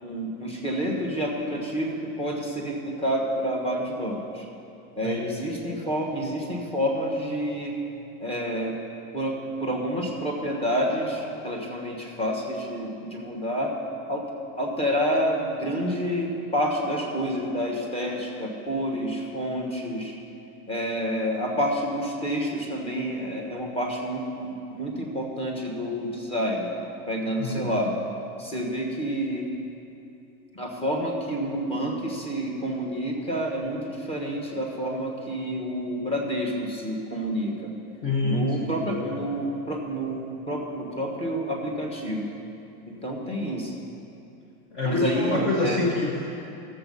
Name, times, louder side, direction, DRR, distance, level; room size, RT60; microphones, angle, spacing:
voice 1, 0.0-4.5 4.9-7.8 8.2-8.8 9.1-13.7 14.1-14.3 14.6-20.1 20.7-26.8 27.1-27.9 28.4-29.5 30.5-37.7 38.2-42.3 42.9-43.7 44.8-45.8, equal, 15° left, -1 dB, 1.4 m, -29 dB
voice 2, 27.4-28.0 38.0-39.2 44.7-46.5, left 2 dB, 30° left, -2 dB, 1.0 m, -27 dB
12.5 x 7.6 x 5.4 m, 2.8 s
supercardioid pair, 150°, 43 cm